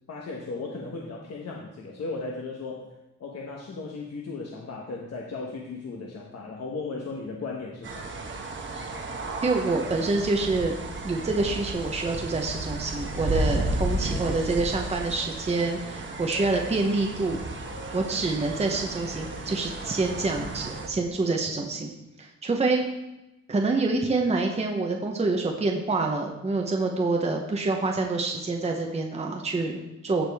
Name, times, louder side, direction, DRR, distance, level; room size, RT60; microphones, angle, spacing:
voice 1, 0.1-2.9 3.2-8.0, left 3 dB, 60° left, -2 dB, 1.2 m, -36 dB
sound 1, 7.8-20.9, right 2 dB, 40° right, 1.1 m, -33 dB
voice 2, 9.4-10.7 11.0-17.4 17.9-21.9 22.2-22.8 23.5-30.2, right 3 dB, 20° right, 2 dB, 0.8 m, -26 dB
15.0 x 5.0 x 3.5 m, 0.97 s
wide cardioid pair, 150°, 29 cm